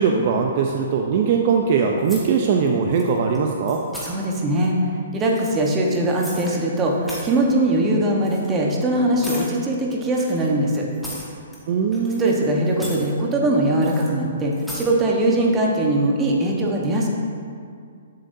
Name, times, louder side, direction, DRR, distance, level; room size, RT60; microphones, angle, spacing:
voice 1, 0.0-3.8 11.7-12.4, right 5 dB, 50° right, 2 dB, 0.5 m, -20 dB
sound 1, 2.0-2.7 2.9-3.4 3.7-4.1 5.2-6.6 6.9-7.4 8.2-8.5 9.2-9.5 10.1-11.6 11.9-12.4 12.7-13.1 13.8-14.1 14.5-14.9, equal, ahead, 1.5 m, -37 dB
voice 2, 4.0-4.7 5.1-10.9 12.2-17.1, right 1 dB, 20° right, -1 dB, 1.1 m, -21 dB
8.1 x 7.6 x 2.7 m, 2.2 s
hypercardioid pair, 135°, 0 cm